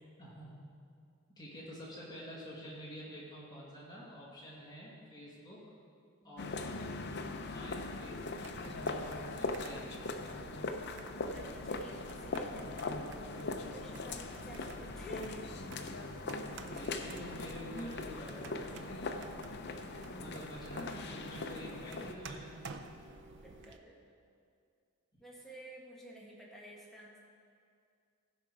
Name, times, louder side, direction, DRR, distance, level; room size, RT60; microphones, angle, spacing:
voice 1, 0.2-0.5 1.4-5.6 6.2-6.9 7.5-8.3 8.8-10.0 14.6-14.7 16.6-19.3 20.1-22.8, equal, 20° left, -6 dB, 2.0 m, -48 dB
voice 2, 6.2-6.6 11.3-13.1 13.5-15.5 18.0-18.1 21.5-22.0 23.4-24.0 25.2-27.2, right 1 dB, ahead, -4 dB, 1.5 m, -52 dB
sound 1, 6.4-22.1, left 3 dB, 50° left, 0.6 m, -40 dB
sound 2, 8.0-23.8, right 3 dB, 50° right, 0.5 m, -52 dB
15.5 x 5.8 x 4.8 m, 2.3 s
head